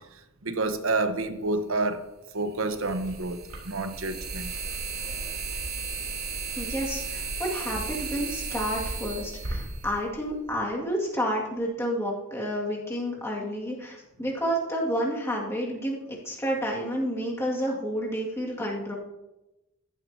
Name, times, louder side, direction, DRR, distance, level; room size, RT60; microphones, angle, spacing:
voice 1, 0.4-2.0 2.3-4.5, right 2 dB, 65° right, 8 dB, 1.1 m, -29 dB
sound 1, 1.2-1.3 2.7-10.6, right 4 dB, 90° right, 3.2 m, -34 dB
voice 2, 6.6-16.0 16.2-18.9, equal, 10° left, -4 dB, 2.2 m, -30 dB
14.0 x 11.5 x 2.8 m, 0.99 s
head